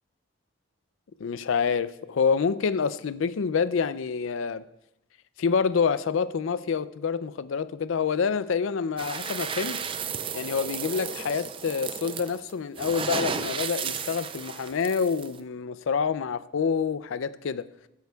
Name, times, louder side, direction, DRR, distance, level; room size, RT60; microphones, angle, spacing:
voice 1, 1.2-4.6 5.4-9.8 10.3-17.7, left 6 dB, 75° left, 0.4 m, -27 dB
sound 1, 9.0-15.4, right 6 dB, 25° right, 0.4 m, -33 dB
16.0 x 9.3 x 2.3 m
head